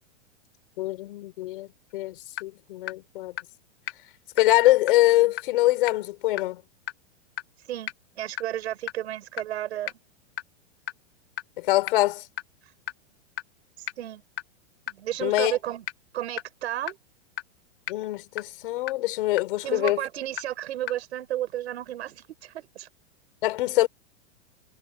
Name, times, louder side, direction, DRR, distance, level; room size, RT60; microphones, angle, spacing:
voice 1, 0.8-1.7 1.9-2.2 2.4-3.3 4.4-6.6 11.6-12.2 15.2-15.6 17.9-20.0 23.4-23.9, left 17 dB, 50° left, 6.1 m, -23 dB
sound 1, 1.9-2.0 2.4-2.5 2.9-3.0 3.4-3.5 3.9-4.0 4.4-4.5 4.9-5.0 5.4-5.5 5.9-6.0 6.4-6.5 6.9-7.0 7.4-7.5 7.9-8.0 8.4-8.5 8.9-9.0 9.4-9.5 9.9-10.0 10.4-10.5 10.9-11.0 11.4-11.5 11.9-12.0 12.4-12.5 12.9-13.0 13.4-13.5 13.9-14.0 14.4-14.5 14.9-15.0 15.4-15.5 15.9-16.0 16.4-16.5 16.9-17.0 17.4-17.5 17.9-18.0 18.4-18.5 18.9-19.0 19.4-19.5 19.9-20.0 20.4-20.5 20.9-21.0, left 12 dB, 65° left, 5.5 m, -31 dB
voice 2, 7.7-9.9 13.8-14.2 14.9-15.8 16.1-17.0 19.6-22.9, right 13 dB, 65° right, 6.3 m, -33 dB
supercardioid pair, 175°, 36 cm